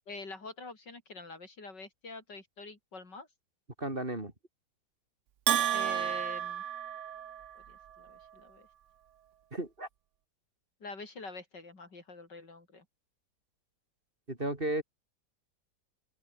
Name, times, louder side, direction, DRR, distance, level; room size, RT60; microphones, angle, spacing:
voice 1, 0.1-3.3 5.7-6.6 7.5-8.7 10.8-12.8, left 3 dB, 70° left, 4.9 m, -46 dB
voice 2, 3.8-4.3 9.5-9.9 14.3-14.8, right 1 dB, 30° right, 3.6 m, -34 dB
Bell, 5.5-7.6, right 10 dB, 55° right, 0.9 m, -31 dB
open air
omnidirectional pair, 2.0 m